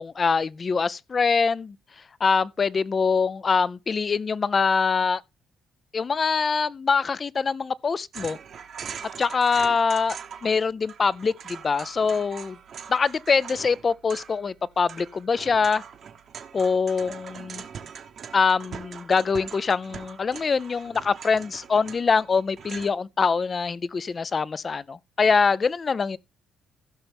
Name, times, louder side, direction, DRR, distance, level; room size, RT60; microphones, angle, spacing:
voice 1, 0.0-1.8 2.2-5.2 5.9-8.4 9.2-12.6 12.9-15.8 16.5-17.6 18.3-26.2, left 5 dB, 40° left, 0.5 m, -24 dB
sound 1, 8.1-10.6 10.8-22.9, right 7 dB, 60° right, 1.2 m, -42 dB
16.0 x 5.8 x 3.5 m
cardioid pair, 90°, 0 cm